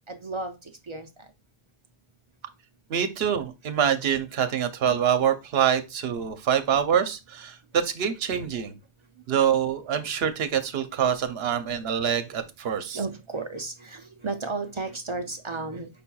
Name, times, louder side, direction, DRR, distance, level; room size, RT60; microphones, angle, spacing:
voice 1, 0.1-1.3 12.9-15.9, right 3 dB, 50° right, 0.3 m, -33 dB
voice 2, 2.9-8.8 9.3-13.0, right 8 dB, 75° right, 0.9 m, -25 dB
5.4 x 4.2 x 2.3 m
omnidirectional pair, 1.1 m